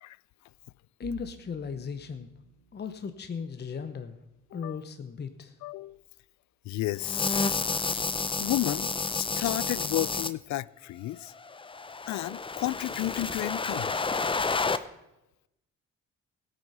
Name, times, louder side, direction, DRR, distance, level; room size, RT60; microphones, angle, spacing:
voice 1, 1.0-2.3 2.7-4.2 4.5-5.6, left 6 dB, 35° left, 0.9 m, -37 dB
Bowed string instrument, 1.0-6.1, right 7 dB, 85° right, 2.1 m, -55 dB
voice 2, 5.6-6.0 6.7-7.6 8.4-11.3 12.1-13.9 14.2-14.5, left 15 dB, 65° left, 0.4 m, -32 dB
sound 1, 7.0-10.3 11.4-14.8, left 4 dB, 15° left, 0.6 m, -30 dB
16.5 x 8.2 x 5.6 m
cardioid pair, 90°, 30 cm